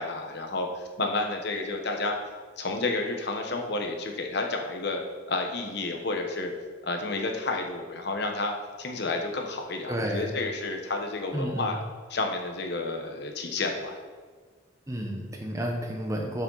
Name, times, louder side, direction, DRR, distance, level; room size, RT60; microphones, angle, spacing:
voice 1, 0.0-2.2 2.6-5.0 5.3-6.5 6.8-11.8 12.1-14.0, left 3 dB, 60° left, 3 dB, 1.0 m, -30 dB
voice 2, 9.9-10.3 11.3-11.7 14.9-16.4, equal, 15° right, 1 dB, 1.0 m, -31 dB
7.9 x 7.3 x 4.0 m, 1.5 s
head